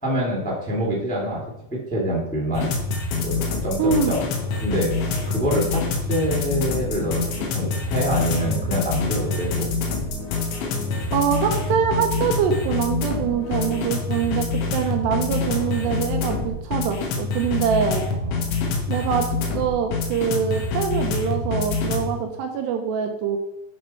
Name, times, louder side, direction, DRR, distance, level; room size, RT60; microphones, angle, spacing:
voice 1, 0.0-1.4 1.7-2.7 3.1-4.3 4.6-5.8 6.1-7.3 7.5-9.7 18.1-18.8, right 1 dB, 5° left, -4 dB, 1.7 m, -26 dB
sound 1, 2.5-22.1, left 3 dB, 85° left, 3.7 m, -26 dB
voice 2, 3.8-4.1 11.1-14.5 14.7-18.0 18.9-23.4, right 7 dB, 75° right, 4 dB, 2.8 m, -24 dB
11.0 x 5.9 x 4.5 m, 0.87 s
omnidirectional pair, 5.2 m